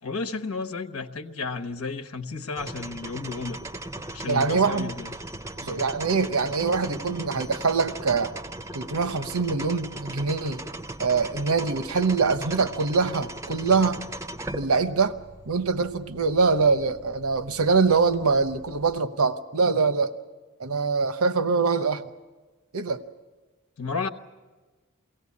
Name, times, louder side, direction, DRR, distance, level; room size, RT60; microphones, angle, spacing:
voice 1, 0.0-3.6 4.1-5.1 23.8-24.1, left 4 dB, 85° left, 8 dB, 1.2 m, -32 dB
sound 1, 2.5-19.0, right 1 dB, 15° right, 0.6 m, -39 dB
voice 2, 4.2-4.9 5.6-8.3 8.7-10.6 11.0-14.0 14.5-15.1 15.5-20.1 20.6-22.0 22.7-23.0, right 4 dB, 85° right, 11 dB, 0.9 m, -24 dB
23.5 x 17.5 x 8.5 m, 1.3 s
head